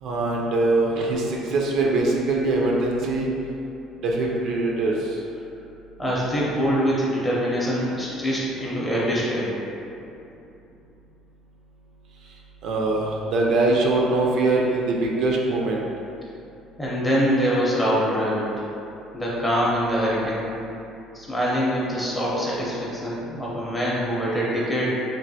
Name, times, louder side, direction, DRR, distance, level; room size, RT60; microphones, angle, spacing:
voice 1, 0.0-3.3 4.0-5.2 12.6-15.8, right 2 dB, 60° right, -2 dB, 0.4 m, -22 dB
voice 2, 6.0-9.5 16.8-18.5 19.1-20.6 21.1-24.9, equal, 10° left, -6 dB, 0.6 m, -24 dB
3.2 x 2.5 x 2.7 m, 2.7 s
cardioid pair, 150°, 0 cm